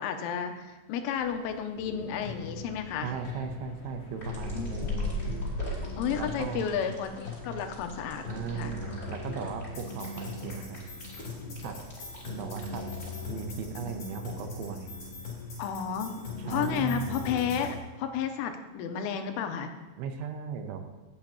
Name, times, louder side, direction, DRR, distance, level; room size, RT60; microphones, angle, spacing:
voice 1, 0.0-3.1 4.6-5.0 6.0-8.7 15.6-19.7, left 8 dB, 85° left, 6 dB, 3.2 m, -32 dB
sound 1, 1.2-16.9, left 2 dB, 65° left, 2.7 m, -42 dB
sound 2, 1.7-17.7, left 4 dB, 30° left, 3.3 m, -41 dB
voice 2, 3.0-5.1 6.2-6.8 8.3-10.8 11.6-11.8 12.2-12.8 13.3-14.9 16.4-17.3 20.0-20.8, right 7 dB, 80° right, 6 dB, 3.1 m, -37 dB
sound 3, 4.2-13.1, left 1 dB, 15° left, 2.2 m, -47 dB
17.0 x 8.7 x 2.9 m, 1.2 s
omnidirectional pair, 5.6 m